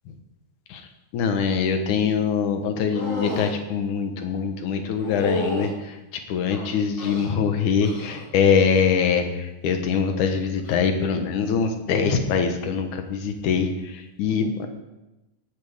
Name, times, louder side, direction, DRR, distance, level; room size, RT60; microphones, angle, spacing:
voice 1, 1.1-5.7 6.3-9.2 9.6-13.7 14.2-14.7, left 6 dB, 70° left, 6 dB, 2.6 m, -23 dB
sound 1, 2.9-3.6 5.0-5.7 6.5-7.3 7.8-8.2 8.6-9.0 10.6-10.8, left 2 dB, 20° left, 1.5 m, -31 dB
16.5 x 12.0 x 3.6 m, 0.99 s
omnidirectional pair, 4.0 m